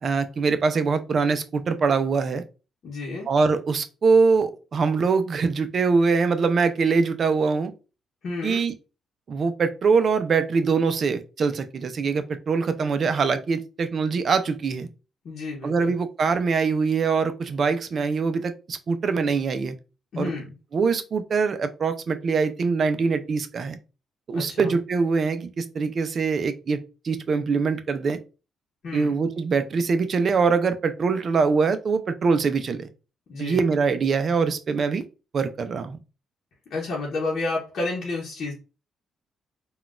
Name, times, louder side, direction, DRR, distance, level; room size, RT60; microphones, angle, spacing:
voice 1, 0.0-2.4 3.3-7.7 8.4-8.7 9.3-14.9 15.6-19.8 20.2-20.3 20.7-23.8 24.3-28.2 28.9-32.9 33.4-35.0 35.3-36.0, right 5 dB, 50° right, 10 dB, 0.4 m, -23 dB
voice 2, 2.8-3.3 8.2-8.6 15.2-15.9 20.1-20.5 24.3-24.7 28.8-29.1 33.3-33.7 36.7-38.5, left 3 dB, 65° left, -3 dB, 0.8 m, -30 dB
3.7 x 2.3 x 2.4 m, 0.32 s
cardioid pair, 90°, 0 cm